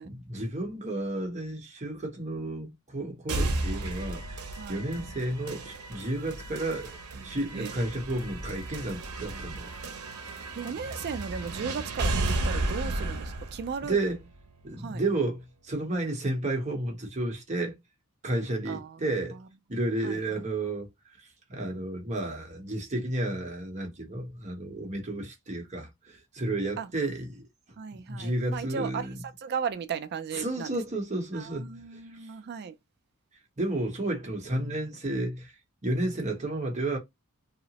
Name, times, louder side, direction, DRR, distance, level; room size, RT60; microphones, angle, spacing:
voice 1, 0.0-9.8 13.8-14.2 14.6-17.8 18.2-19.4 19.7-27.4 27.9-29.2 30.3-32.3 33.6-35.5 35.8-37.0, right 2 dB, 35° right, 0.9 m, -32 dB
sound 1, 3.3-15.2, right 2 dB, 85° right, 0.7 m, -34 dB
voice 2, 10.5-14.0 14.8-15.0 18.7-19.0 20.0-20.4 26.8-26.9 27.8-29.1 29.4-30.8 31.3-32.8, right 6 dB, 50° right, 0.3 m, -36 dB
2.8 x 2.0 x 2.8 m
head